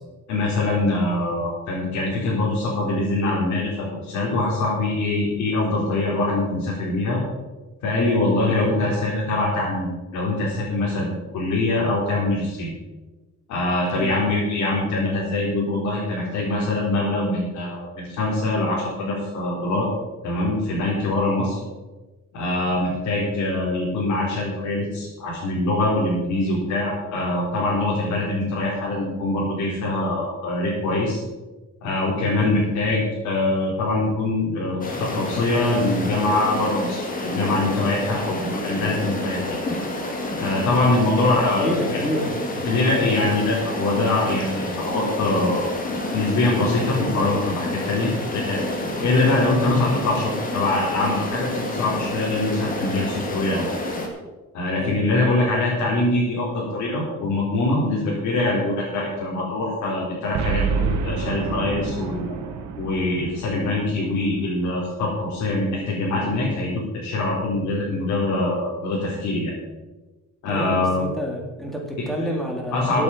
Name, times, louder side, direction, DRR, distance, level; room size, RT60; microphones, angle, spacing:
voice 1, 0.3-7.2 7.8-12.7 13.5-19.9 20.2-21.6 22.3-31.2 31.8-39.6 40.4-41.7 42.6-45.7 46.1-48.6 49.0-53.6 54.5-62.4 62.8-69.5 70.4-71.0 72.2-72.3 72.7-73.0, left 2 dB, 80° left, -6 dB, 4.2 m, -23 dB
sound 1, 34.8-54.1, left 1 dB, 30° left, 2.1 m, -29 dB
voice 2, 41.6-42.7 54.8-55.2 70.5-73.0, equal, ahead, -1 dB, 2.5 m, -29 dB
Boom, 60.3-64.7, right 5 dB, 80° right, 1.7 m, -28 dB
16.0 x 8.5 x 5.1 m, 1.2 s
cardioid pair, 170°, 29 cm